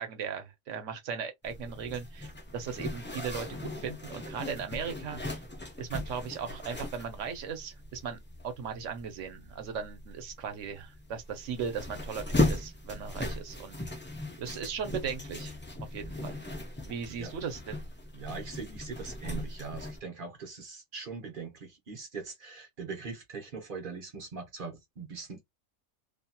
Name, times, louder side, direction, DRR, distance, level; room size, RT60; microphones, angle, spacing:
voice 1, 0.0-5.4 5.8-14.0 14.4-15.6 15.9-16.4 16.8-17.8, right 6 dB, 70° right, 1.0 m, -38 dB
Zipper (clothing), 1.4-20.0, left 2 dB, 15° left, 0.3 m, -37 dB
voice 2, 18.1-25.4, right 4 dB, 45° right, 0.9 m, -41 dB
2.8 x 2.7 x 2.2 m
omnidirectional pair, 1.4 m